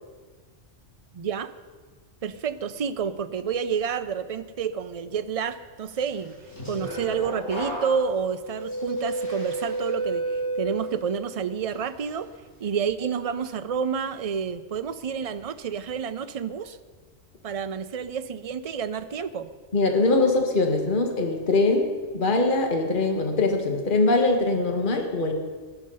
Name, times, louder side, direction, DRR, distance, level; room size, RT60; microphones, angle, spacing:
voice 1, 1.1-1.5 2.2-6.3 6.7-12.3 12.6-16.8 17.4-19.5, right 6 dB, 40° right, 10 dB, 0.6 m, -29 dB
sound 1, 6.2-11.2 11.7-12.1, right 2 dB, 85° left, 6.4 m, -31 dB
voice 2, 19.7-21.9 22.1-25.3, left 3 dB, 40° left, 3 dB, 1.7 m, -22 dB
18.0 x 11.0 x 5.5 m, 1.4 s
omnidirectional pair, 1.3 m